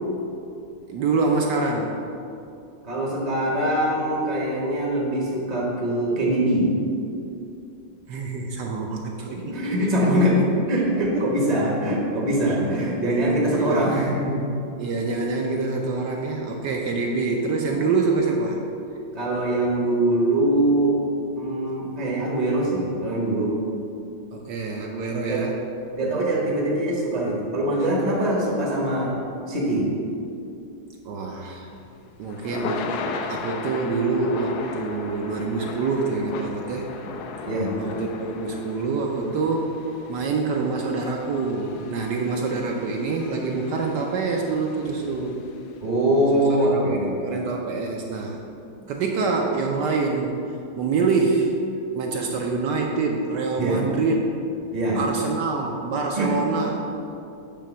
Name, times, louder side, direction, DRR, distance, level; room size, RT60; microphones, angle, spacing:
voice 1, 0.9-2.0 8.1-9.6 10.0-10.2 11.0-11.5 12.4-12.9 13.6-14.0 14.8-18.6 24.3-25.5 31.0-31.7 32.2-32.9 33.3-36.9 37.8-39.8 40.1-45.4 46.6-48.4 48.9-50.3 50.8-51.5 51.9-54.2 54.9-56.8, right 4 dB, 70° right, 1 dB, 1.1 m, -26 dB
voice 2, 2.8-6.8 9.3-10.4 10.7-14.4 17.7-17.8 19.1-21.0 21.4-23.6 25.3-25.4 25.9-29.2 29.5-29.9 37.4-37.7 45.8-47.2 53.6-53.8 54.7-55.0 56.1-56.3, right 1 dB, 30° right, -3 dB, 0.7 m, -23 dB
Thunder / Rain, 31.5-45.8, left 4 dB, 90° left, 0.8 m, -37 dB
8.5 x 3.3 x 6.1 m, 2.6 s
omnidirectional pair, 2.3 m